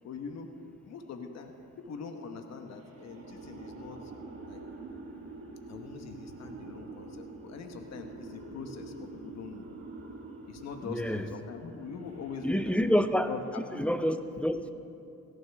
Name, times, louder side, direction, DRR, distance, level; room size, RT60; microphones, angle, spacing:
voice 1, 0.0-0.5 0.8-4.1 4.5-4.6 5.7-9.7 10.5-13.9, left 5 dB, 60° left, 5 dB, 1.2 m, -43 dB
sound 1, 2.8-13.9, right 3 dB, 50° right, 2.9 m, -46 dB
voice 2, 10.9-11.2 12.4-13.3 13.8-14.7, equal, 5° left, 9 dB, 0.7 m, -27 dB
18.0 x 16.0 x 3.6 m, 2.6 s
cardioid pair, 90°, 30 cm